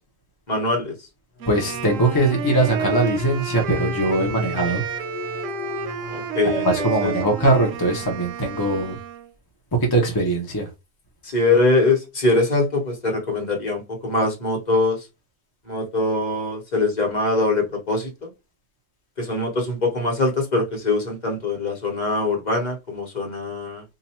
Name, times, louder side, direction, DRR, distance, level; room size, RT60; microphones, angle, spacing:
voice 1, 0.5-0.9 6.1-7.1 11.2-15.0 15.7-18.1 19.2-23.8, left 2 dB, 40° left, 1.1 m, -23 dB
sound 1, 1.4-8.3, left 3 dB, 60° left, 1.0 m, -35 dB
Wind instrument woodwind instrument, 1.4-9.3, right 6 dB, 90° right, 1.0 m, -31 dB
voice 2, 1.5-4.8 6.5-9.0 9.9-10.7, right 2 dB, 25° left, 0.6 m, -21 dB
2.8 x 2.5 x 4.2 m
omnidirectional pair, 1.3 m